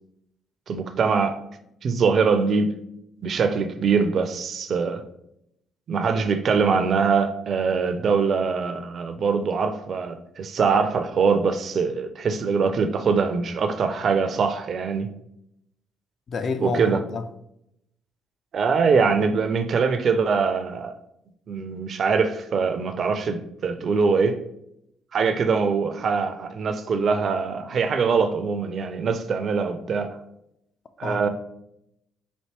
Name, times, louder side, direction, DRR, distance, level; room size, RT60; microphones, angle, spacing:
voice 1, 0.7-1.4 1.8-2.7 3.2-5.0 5.9-15.1 16.6-17.0 18.5-21.0 21.5-24.4 25.1-30.2 31.0-31.3, right 5 dB, 45° right, 0.4 m, -23 dB
voice 2, 16.3-17.2 31.0-31.3, left 4 dB, 45° left, 0.4 m, -29 dB
4.3 x 2.7 x 2.9 m
figure-of-eight pair, 45°, 0 cm